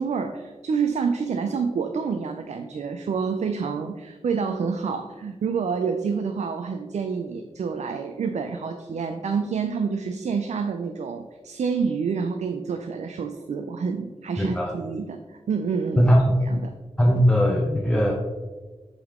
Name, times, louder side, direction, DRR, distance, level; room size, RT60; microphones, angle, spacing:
voice 1, 0.0-16.1 16.5-16.6, right 5 dB, 75° right, 6 dB, 0.4 m, -28 dB
voice 2, 14.4-14.7 16.0-16.3 17.0-18.1, equal, 10° left, -1 dB, 0.7 m, -19 dB
7.8 x 3.7 x 3.6 m, 1.3 s
wide cardioid pair, 100°, 12 cm